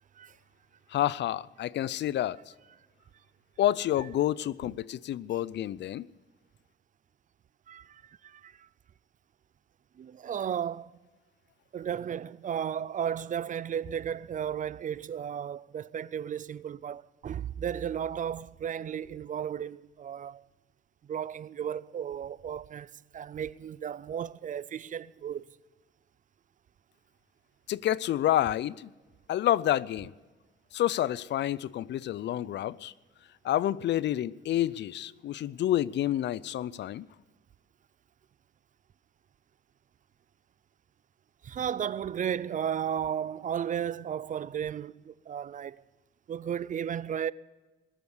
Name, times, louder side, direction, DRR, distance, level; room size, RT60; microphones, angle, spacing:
voice 1, 0.9-2.4 3.6-6.1 27.7-28.9 29.3-30.1 30.7-32.9 33.4-37.1, left 12 dB, 60° left, 0.5 m, -29 dB
voice 2, 7.7-8.7 10.0-11.0 11.7-20.4 21.0-25.6 41.4-45.8 46.3-47.3, right 9 dB, 40° right, 0.4 m, -34 dB
20.5 x 7.1 x 9.6 m
cardioid pair, 90°, 20 cm